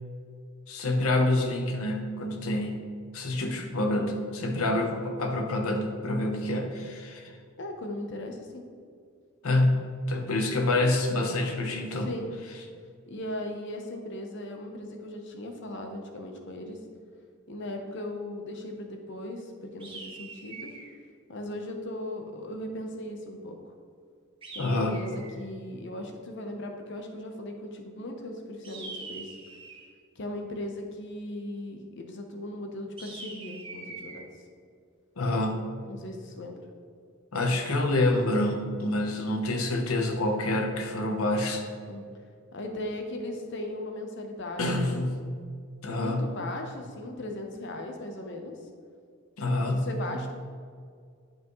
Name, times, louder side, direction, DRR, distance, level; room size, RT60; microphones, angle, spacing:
voice 1, 0.7-2.8 3.1-7.2 9.4-12.1 24.6-25.0 35.2-35.6 37.3-41.6 44.6-45.2 45.8-46.3 49.4-49.9, left 2 dB, 85° left, 3 dB, 0.9 m, -27 dB
voice 2, 7.6-8.6 11.9-12.3 13.1-16.8 17.5-20.7 21.3-23.7 24.5-29.4 30.2-34.3 35.9-36.6 41.9-42.1 42.5-44.9 45.9-48.6 49.7-50.3, left 1 dB, 55° left, 4 dB, 0.8 m, -38 dB
sound 1, 19.8-21.0 24.4-25.4 28.6-29.9 33.0-34.2, right 3 dB, 25° right, 1.1 m, -43 dB
10.5 x 4.9 x 3.1 m, 2.1 s
head